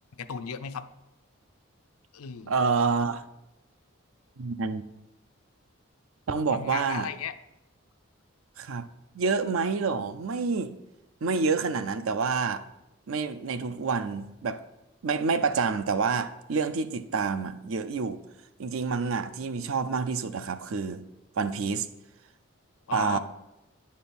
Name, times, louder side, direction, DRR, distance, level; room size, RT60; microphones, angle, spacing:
voice 1, 0.2-0.9 2.1-2.5 6.5-7.3 22.9-23.2, left 7 dB, 90° left, 11 dB, 0.5 m, -35 dB
voice 2, 2.5-3.3 4.4-4.8 6.3-7.1 8.6-8.9 9.1-10.7 11.2-12.6 13.1-14.6 15.0-18.2 18.6-21.0 21.4-21.9 22.9-23.2, right 5 dB, 70° right, 12 dB, 0.5 m, -28 dB
9.4 x 4.4 x 5.3 m, 0.93 s
head